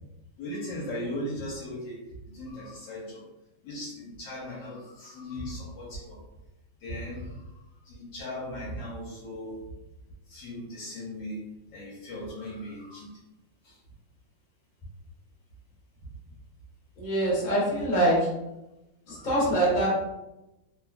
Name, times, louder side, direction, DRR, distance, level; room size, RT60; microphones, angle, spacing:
voice 1, 0.4-3.2 3.6-6.3 6.8-7.4 7.8-9.6 10.3-11.4 11.7-13.2 13.6-13.8 19.1-19.3, left 1 dB, 70° left, -4 dB, 1.2 m, -38 dB
voice 2, 17.0-18.3 19.1-19.9, right 1 dB, 40° left, -6 dB, 0.7 m, -24 dB
3.3 x 2.2 x 2.3 m, 0.96 s
omnidirectional pair, 2.3 m